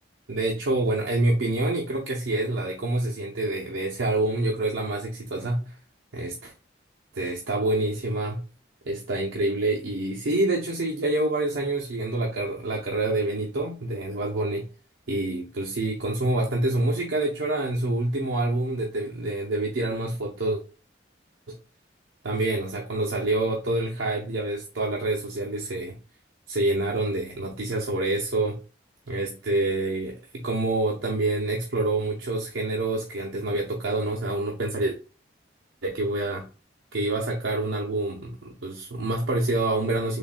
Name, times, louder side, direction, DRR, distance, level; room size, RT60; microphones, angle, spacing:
voice 1, 0.3-5.7 6.1-6.5 7.1-8.4 8.8-14.7 15.1-20.6 21.5-21.6 22.2-26.0 26.5-28.6 29.1-35.0 35.8-36.4 36.9-40.2, right 2 dB, 80° right, 0.7 m, -27 dB
3.9 x 3.3 x 2.2 m
head